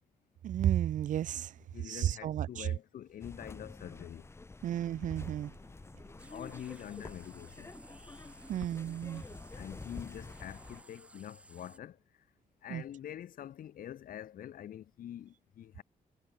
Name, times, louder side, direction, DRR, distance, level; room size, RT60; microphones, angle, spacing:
voice 1, 0.4-1.5 1.8-2.7 4.6-5.5 8.5-9.2 12.7-12.8, right 11 dB, 65° right, 0.5 m, -32 dB
voice 2, 1.7-4.3 6.3-7.7 9.5-12.0 12.6-15.8, left 10 dB, 85° left, 1.8 m, -45 dB
sound 1, 3.2-10.8, left 3 dB, 20° left, 3.4 m, -48 dB
sound 2, 6.2-11.8, right 1 dB, 10° right, 3.3 m, -57 dB
wide cardioid pair, 170°, 14 cm